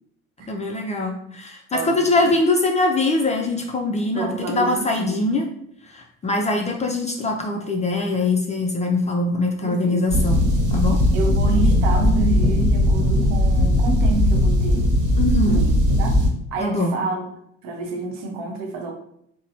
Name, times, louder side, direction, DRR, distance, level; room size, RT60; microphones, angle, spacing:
voice 1, 0.5-5.4 5.9-10.4 10.7-11.0 15.2-15.6 16.6-16.9, left 2 dB, 20° left, 1 dB, 0.3 m, -22 dB
voice 2, 1.7-2.3 4.1-5.3 9.4-10.0 11.1-14.8 15.4-16.2 16.5-18.9, right 4 dB, 65° right, 3 dB, 0.8 m, -29 dB
sound 1, 10.1-16.3, left 1 dB, 50° right, 1.1 m, -18 dB
3.9 x 2.0 x 2.6 m, 0.72 s
hypercardioid pair, 65°, 40 cm